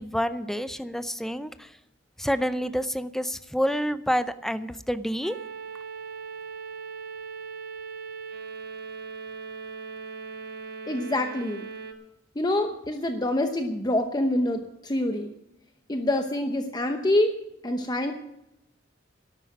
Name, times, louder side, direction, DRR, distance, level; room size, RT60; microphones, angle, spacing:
voice 1, 0.0-1.7 2.2-5.4, equal, ahead, 12 dB, 0.5 m, -28 dB
sound 1, 5.2-11.9, right 5 dB, 55° right, 1.6 m, -39 dB
voice 2, 10.9-11.7 12.3-15.3 15.9-17.3 17.6-18.1, left 1 dB, 20° left, 5 dB, 0.9 m, -26 dB
12.5 x 12.0 x 6.0 m, 0.86 s
head